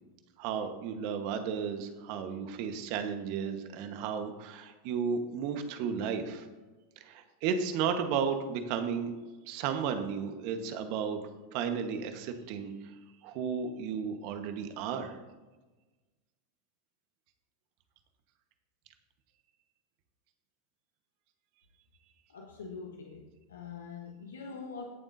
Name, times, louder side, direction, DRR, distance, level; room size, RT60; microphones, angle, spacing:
voice 1, 0.4-6.5 7.0-9.1 9.5-11.2 11.5-12.7 13.2-15.2, right 6 dB, 55° right, 7 dB, 1.3 m, -33 dB
voice 2, 22.3-24.8, left 5 dB, 80° left, 1 dB, 1.2 m, -44 dB
18.0 x 7.2 x 2.8 m, 1.2 s
hypercardioid pair, 95°, 0 cm